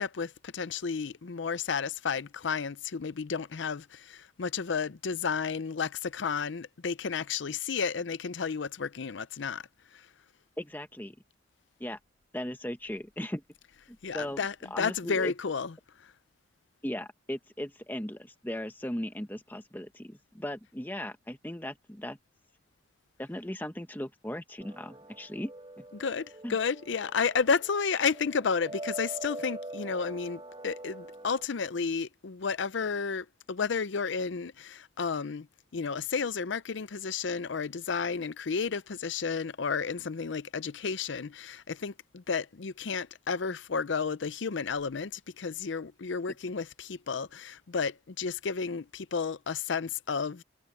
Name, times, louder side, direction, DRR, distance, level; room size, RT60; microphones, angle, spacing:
voice 1, 0.0-9.6 14.0-15.7 25.9-35.5 35.7-50.4, left 5 dB, 75° left, 0.6 m, -32 dB
voice 2, 10.6-11.2 11.8-12.0 12.3-13.4 14.1-14.4 14.7-15.3 16.8-22.2 23.2-25.5 25.8-25.9 26.4-26.6, left 1 dB, 10° left, 1.1 m, -37 dB
sound 1, 24.6-31.4, right 1 dB, 25° right, 5.3 m, -44 dB
head